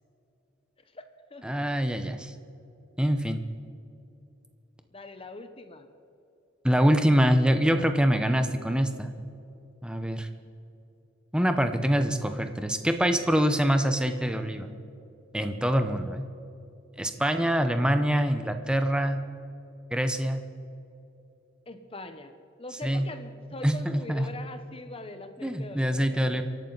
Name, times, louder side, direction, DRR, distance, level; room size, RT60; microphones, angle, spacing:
voice 1, 1.4-2.3 3.0-3.4 6.6-9.1 9.8-10.3 11.3-14.7 15.3-16.2 17.0-19.2 19.9-20.4 22.8-23.1 23.6-24.3 25.4-26.4, equal, 5° right, 7 dB, 0.8 m, -25 dB
voice 2, 4.9-5.9 21.7-22.3 22.6-26.4, left 2 dB, 30° left, 8 dB, 0.9 m, -42 dB
28.0 x 11.5 x 4.0 m, 2.9 s
head